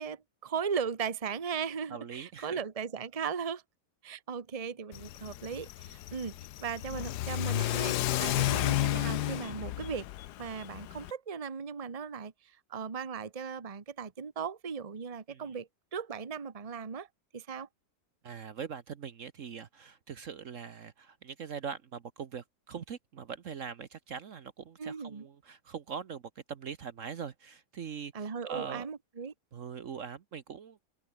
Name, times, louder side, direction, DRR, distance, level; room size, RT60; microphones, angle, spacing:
voice 1, 0.0-3.6 4.0-10.1 10.4-12.3 12.7-17.1 17.3-17.7 24.8-25.2 28.1-29.3, right 6 dB, 25° right, 1.1 m, -37 dB
voice 2, 1.9-2.6 8.2-8.3 15.3-15.5 18.2-26.2 26.5-28.9 29.5-30.8, right 6 dB, 55° right, 1.3 m, -42 dB
Car / Accelerating revving vroom, 4.9-11.1, left 14 dB, 85° left, 1.2 m, -32 dB
omnidirectional pair, 1.7 m